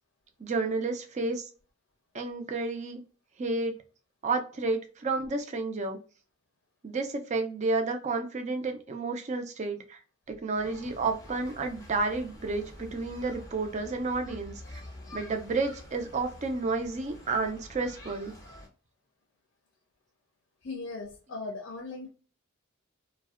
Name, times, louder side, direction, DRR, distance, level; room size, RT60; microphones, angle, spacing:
voice 1, 0.4-1.5 2.1-3.0 3.4-3.7 4.2-6.0 6.8-10.0 10.4-14.5 15.1-18.3, right 3 dB, 35° right, 5 dB, 0.4 m, -31 dB
sound 1, 10.5-18.7, left 1 dB, 15° left, 0.6 m, -47 dB
voice 2, 20.6-22.1, left 3 dB, 65° left, 1 dB, 0.5 m, -38 dB
2.5 x 2.1 x 2.3 m, 0.36 s
head